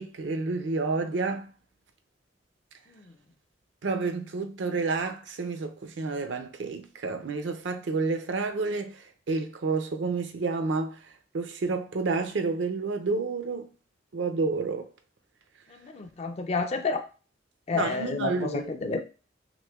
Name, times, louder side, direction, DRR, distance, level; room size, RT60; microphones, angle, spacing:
voice 1, 0.0-1.5 3.8-13.7 14.1-14.9 17.7-18.7, right 4 dB, 75° right, 0.5 m, -30 dB
voice 2, 15.7-17.0 17.7-19.0, left 4 dB, 35° left, 0.3 m, -30 dB
5.9 x 2.0 x 2.3 m
head